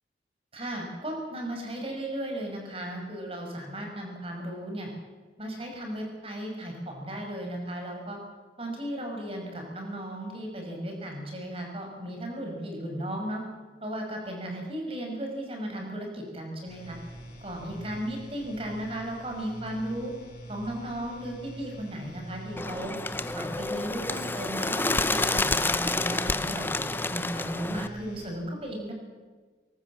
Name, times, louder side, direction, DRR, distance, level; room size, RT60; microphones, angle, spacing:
voice 1, 0.5-4.9 5.4-8.2 8.6-13.4 13.8-17.0 17.4-20.1 20.5-22.9 23.3-26.8 27.1-28.9, right 1 dB, 30° right, 2 dB, 6.0 m, -35 dB
sound 1, 16.7-28.3, right 1 dB, 45° left, 7.3 m, -45 dB
Bird, 22.6-27.9, left 2 dB, 10° left, 0.8 m, -29 dB
22.5 x 19.0 x 7.4 m, 1.4 s
head